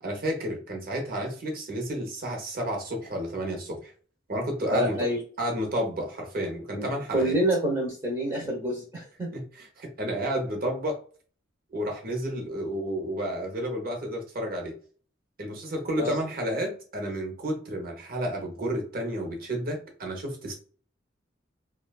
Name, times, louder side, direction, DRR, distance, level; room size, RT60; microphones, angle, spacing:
voice 1, 0.0-3.9 4.3-5.1 5.4-7.4 9.3-11.0 11.7-14.8 15.4-20.5, right 1 dB, 50° right, 2 dB, 0.9 m, -31 dB
voice 2, 4.7-5.2 6.7-9.3 16.0-16.1, right 1 dB, 20° right, -3 dB, 0.7 m, -27 dB
2.9 x 2.3 x 2.2 m, 0.42 s
head